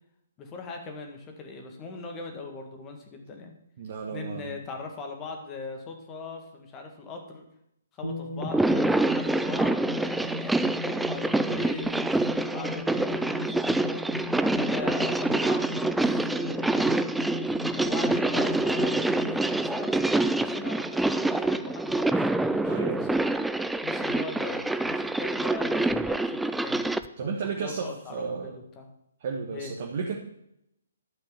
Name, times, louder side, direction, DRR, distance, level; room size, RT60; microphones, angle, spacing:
voice 1, 0.4-3.5 4.1-7.5 7.9-14.1 14.6-17.0 17.7-23.4 23.8-28.9 29.5-29.7, left 4 dB, 20° left, 3 dB, 1.9 m, -40 dB
voice 2, 3.8-4.6 22.7-23.1 27.2-28.5 29.2-30.1, right 5 dB, 40° right, 1 dB, 1.5 m, -33 dB
sound 1, 8.0-20.9, left 1 dB, 90° right, 1.9 m, -38 dB
sound 2, 8.4-27.1, right 2 dB, 5° right, 0.3 m, -26 dB
12.0 x 5.5 x 7.0 m, 0.77 s
figure-of-eight pair, 130°, 0 cm